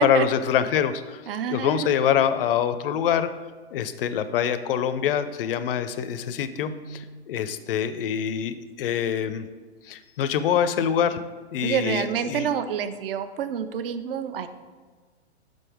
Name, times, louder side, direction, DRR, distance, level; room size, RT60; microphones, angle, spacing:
voice 1, 0.0-1.2 1.5-3.3 3.7-9.5 9.9-11.2 11.5-12.5, left 9 dB, 55° left, 12 dB, 0.5 m, -25 dB
voice 2, 1.3-1.9 6.7-7.0 11.6-14.5, right 8 dB, 55° right, 11 dB, 0.6 m, -28 dB
5.4 x 5.3 x 4.9 m, 1.4 s
hypercardioid pair, 120°, 34 cm